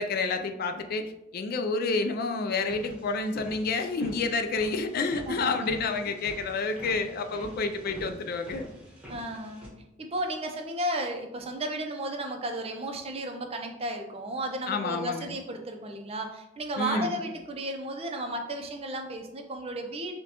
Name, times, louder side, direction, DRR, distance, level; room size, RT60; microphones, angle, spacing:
voice 1, 0.0-8.7 14.7-15.3 16.8-17.2, left 3 dB, 50° left, 7 dB, 0.3 m, -29 dB
sound 1, 2.7-9.7, equal, 5° right, 1.0 m, -46 dB
voice 2, 5.3-5.7 9.1-9.7 10.0-20.1, right 1 dB, 30° right, 4 dB, 0.5 m, -34 dB
6.1 x 2.2 x 2.9 m, 0.92 s
head